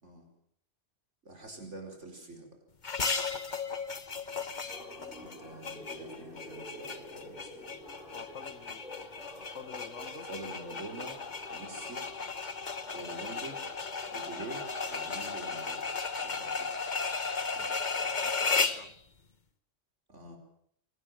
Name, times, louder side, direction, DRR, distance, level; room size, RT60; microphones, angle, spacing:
voice 1, 1.2-2.5 5.2-7.7 10.3-11.1 11.5-12.0 12.9-13.6 14.1-15.9 16.2-16.6 17.6-17.7 18.0-18.1 20.1-20.4, right 2 dB, 70° right, 4 dB, 5.2 m, -45 dB
sound 1, 2.8-18.9, left 4 dB, 40° left, 1.3 m, -35 dB
sound 2, 4.7-15.8, equal, ahead, 7.2 m, -49 dB
voice 2, 8.1-8.8 9.5-10.3 17.5-17.8 18.2-18.9, left 7 dB, 75° left, 15 dB, 1.5 m, -48 dB
24.0 x 18.0 x 7.6 m, 0.68 s
omnidirectional pair, 1.3 m